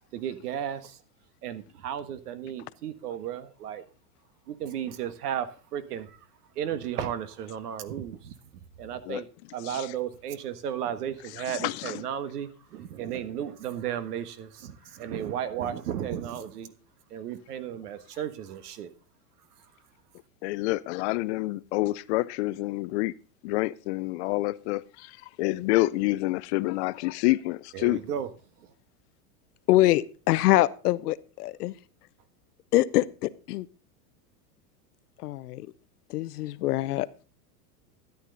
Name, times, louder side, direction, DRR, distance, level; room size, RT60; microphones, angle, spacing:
voice 1, 0.1-1.0 1.4-3.8 4.5-6.2 6.5-8.3 8.8-16.7 17.1-18.9 27.7-28.3 28.6-28.7, right 9 dB, 80° right, 1.5 m, -34 dB
voice 2, 11.5-11.9 20.4-23.1 23.4-28.0, left 20 dB, 50° left, 0.5 m, -28 dB
voice 3, 29.7-31.7 32.7-33.7 35.2-35.7 36.1-37.1, left 16 dB, 80° left, 0.8 m, -24 dB
13.0 x 9.3 x 3.9 m
supercardioid pair, 135°, 46 cm